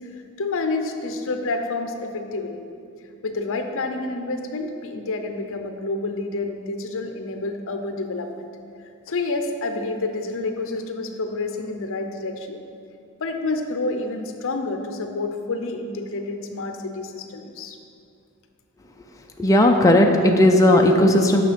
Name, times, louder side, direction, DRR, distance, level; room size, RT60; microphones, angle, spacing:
voice 1, 0.0-2.6 3.2-8.5 9.1-12.6 13.2-17.8, left 3 dB, 65° left, 5 dB, 0.7 m, -29 dB
voice 2, 19.4-21.4, left 1 dB, 15° left, 2 dB, 0.5 m, -15 dB
9.2 x 6.3 x 5.1 m, 2.5 s
head